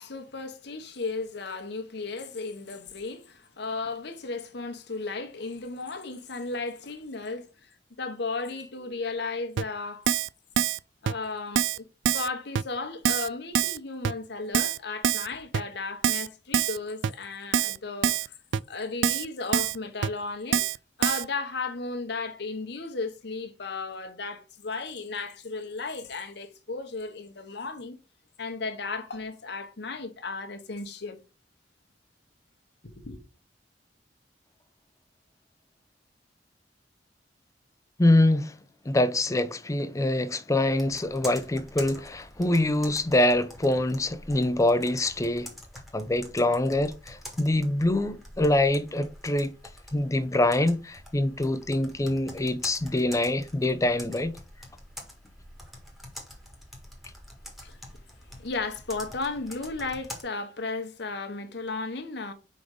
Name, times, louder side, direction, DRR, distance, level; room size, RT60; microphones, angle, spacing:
voice 1, 0.0-7.5 8.0-10.1 11.0-18.3 18.7-20.6 21.0-28.0 28.4-31.2 32.8-33.2 57.6-57.8 58.4-62.3, left 3 dB, 70° left, 1.1 m, -35 dB
Keyboard (musical), 9.6-9.7 10.1-10.3 10.6-10.8 11.1-11.2 11.6-11.8 12.1-12.3 12.6-12.7 13.0-13.3 13.5-13.8 14.0-14.1 14.5-14.8 15.0-15.3 15.5-15.6 16.0-16.3 16.5-16.8 17.0-17.1 17.5-17.8 18.0-18.3 18.5-18.6 19.0-19.3 19.5-19.8 20.0-20.1 20.5-20.8 21.0-21.2, right 9 dB, 85° right, 0.3 m, -25 dB
voice 2, 38.0-38.6 38.9-45.5 45.9-49.5 49.9-54.3, left 1 dB, 20° left, 0.5 m, -25 dB
Computer keyboard, 40.7-60.2, left 1 dB, ahead, 1.5 m, -46 dB
5.0 x 3.9 x 4.8 m
head